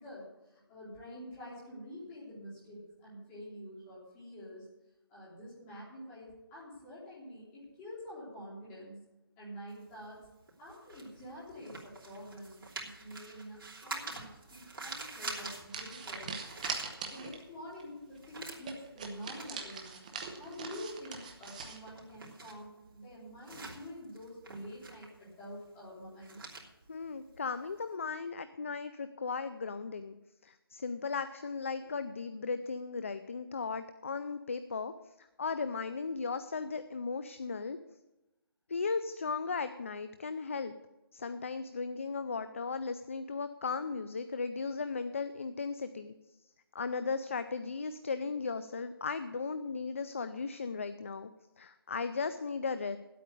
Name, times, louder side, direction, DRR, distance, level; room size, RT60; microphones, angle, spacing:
voice 1, 0.0-4.7 5.1-9.0 9.4-10.2 10.6-16.3 17.1-19.9 20.3-26.6 31.8-31.9, equal, 10° left, -7 dB, 3.4 m, -47 dB
sound 1, 9.7-17.5 17.8-27.9, right 3 dB, 65° right, 3.1 m, -47 dB
sound 2, 14.9-15.1 15.7-17.5 17.8-17.9 18.2-18.3 18.6-21.8, right 5 dB, 20° right, 1.0 m, -42 dB
voice 2, 26.9-30.2 30.4-37.8 38.7-40.7 41.1-46.1 46.7-51.3 51.6-53.0, left 4 dB, 35° left, 11 dB, 0.4 m, -36 dB
10.0 x 8.5 x 8.2 m, 0.99 s
hypercardioid pair, 175°, 13 cm